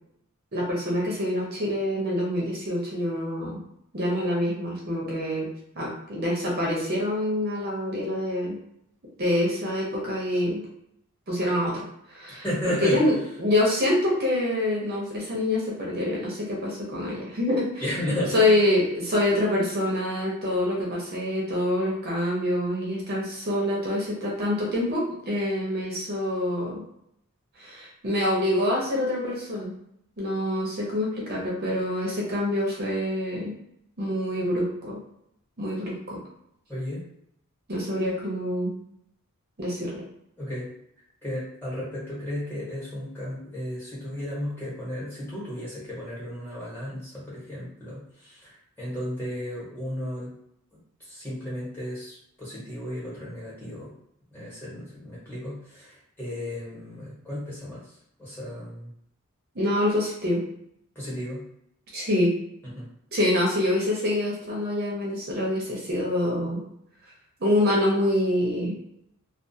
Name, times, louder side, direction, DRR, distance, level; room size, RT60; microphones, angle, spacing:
voice 1, 0.5-3.6 3.9-5.5 5.8-8.6 9.2-10.6 11.3-12.5 12.8-17.9 18.3-26.8 27.6-29.7 30.2-33.5 34.0-35.0 35.6-36.2 37.7-38.8 39.6-40.0 59.5-60.4 61.9-62.4 63.1-66.6 67.4-68.8, left 1 dB, 45° right, -4 dB, 0.6 m, -26 dB
voice 2, 12.4-13.0 17.8-18.6 36.7-37.0 40.4-40.7 41.2-48.5 48.8-50.3 51.1-53.9 54.3-57.8 58.2-58.9 60.9-61.4 62.8-62.9, left 1 dB, 10° left, -7 dB, 1.1 m, -34 dB
2.3 x 2.3 x 2.7 m, 0.75 s
head